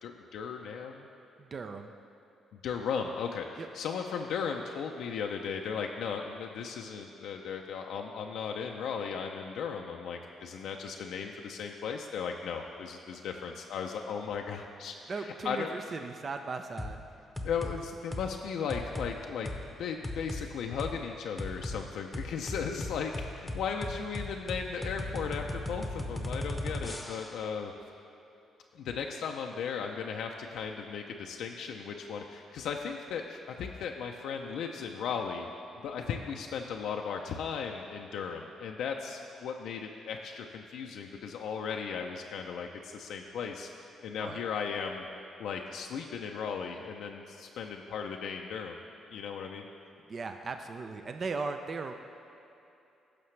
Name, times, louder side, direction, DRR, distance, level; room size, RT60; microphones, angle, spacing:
voice 1, 0.0-1.1 2.5-15.7 17.4-19.5 19.8-27.7 28.7-35.5 35.8-43.7 44.0-45.1 45.4-48.8 49.1-49.7, left 6 dB, 75° left, 2 dB, 0.5 m, -36 dB
voice 2, 1.4-1.9 3.6-3.7 15.1-17.1 44.2-44.4 50.1-51.9, right 4 dB, 45° right, 6 dB, 0.5 m, -37 dB
sound 1, 16.8-17.0 17.4-17.8 18.1-18.3 18.7-19.1 19.5-19.6 20.0-20.4 20.8-20.9 21.4-21.8 22.1-27.4, left 1 dB, 10° left, 0.8 m, -36 dB
14.5 x 5.8 x 3.2 m, 2.9 s
cardioid pair, 90°, 0 cm